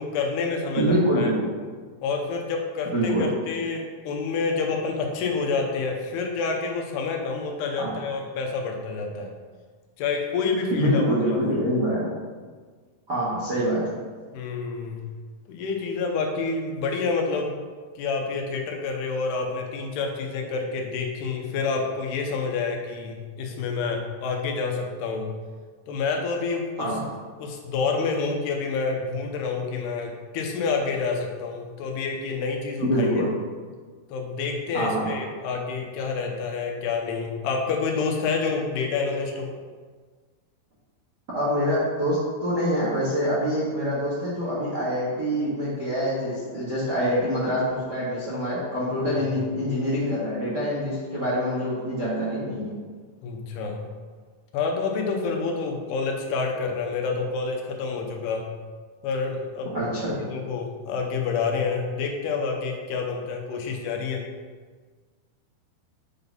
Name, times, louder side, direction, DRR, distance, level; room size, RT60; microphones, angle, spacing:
voice 1, 0.0-1.3 2.0-9.3 10.0-11.5 14.3-15.1 15.5-17.6 18.0-25.3 25.9-26.9 27.4-33.3 34.1-39.5 49.1-49.3 53.2-53.9 54.5-58.5 59.0-59.7 60.2-64.2, left 4 dB, 90° left, 2 dB, 2.9 m, -28 dB
voice 2, 0.8-1.5 2.9-3.2 7.8-7.9 10.7-12.0 13.1-13.9 26.8-27.0 32.8-33.3 34.7-35.1 41.3-52.7 59.7-60.1, equal, 55° right, -8 dB, 1.1 m, -25 dB
8.0 x 4.0 x 5.3 m, 1.5 s
omnidirectional pair, 4.7 m